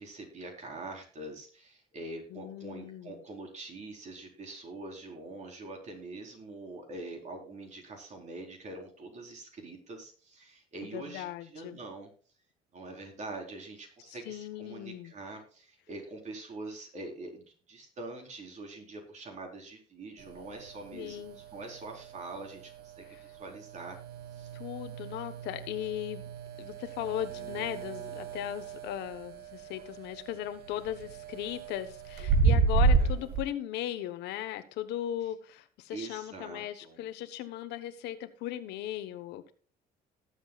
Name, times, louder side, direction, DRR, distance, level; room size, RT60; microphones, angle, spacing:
voice 1, 0.0-12.1 12.7-24.0 24.3-24.5 35.9-37.0, right 2 dB, 45° right, 2 dB, 4.2 m, -44 dB
voice 2, 2.3-3.2 10.9-11.8 14.3-15.1 20.9-21.4 23.1-23.2 24.5-26.3 26.6-39.5, left 12 dB, 90° left, 10 dB, 1.2 m, -37 dB
sound 1, 20.2-33.4, right 4 dB, 70° right, 2.0 m, -32 dB
18.5 x 7.9 x 2.4 m, 0.40 s
cardioid pair, 110°, 17 cm